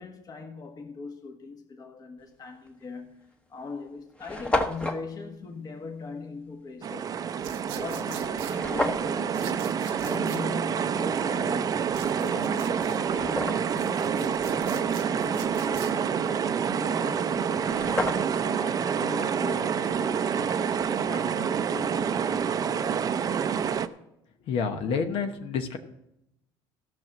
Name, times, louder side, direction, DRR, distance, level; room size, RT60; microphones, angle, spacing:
voice 1, 0.0-7.2 7.7-18.0 18.4-23.2, left 4 dB, 40° left, 1.5 m, -41 dB
sound 1, 2.7-2.9 3.6-3.7 3.8-3.9 4.1-5.0 8.5-9.1 12.0-12.1 12.7-13.8 17.2-17.3 17.5-18.5, left 1 dB, 10° left, 1.0 m, -30 dB
sound 2, 6.8-23.9, right 7 dB, 35° right, 0.6 m, -27 dB
sound 3, 7.4-8.6 9.3-10.4 11.9-13.0 13.6-15.9, right 10 dB, 90° right, 1.1 m, -44 dB
voice 2, 24.5-25.8, left 5 dB, 65° left, 1.1 m, -28 dB
15.0 x 6.2 x 6.0 m
supercardioid pair, 100°, 10 cm